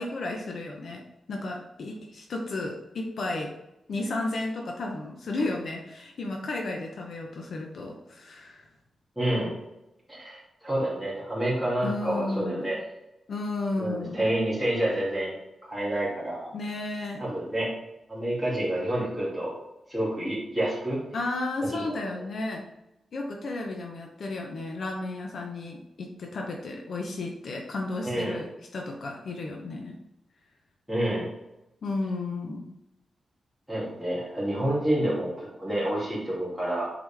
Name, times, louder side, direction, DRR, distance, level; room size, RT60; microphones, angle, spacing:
voice 1, 0.0-3.5 3.9-8.7 11.8-12.7 13.3-14.3 16.5-17.3 21.1-22.7 23.1-30.0 31.8-32.7, left 2 dB, 55° left, 1 dB, 0.8 m, -33 dB
voice 2, 9.2-9.5 10.1-12.8 13.8-15.3 15.6-16.5 17.2-17.7 18.1-19.6 19.9-21.0 21.7-22.0 28.0-28.4 30.9-31.3 33.7-36.9, right 1 dB, ahead, -7 dB, 2.4 m, -28 dB
7.9 x 4.0 x 3.4 m, 0.92 s
wide cardioid pair, 180°, 0 cm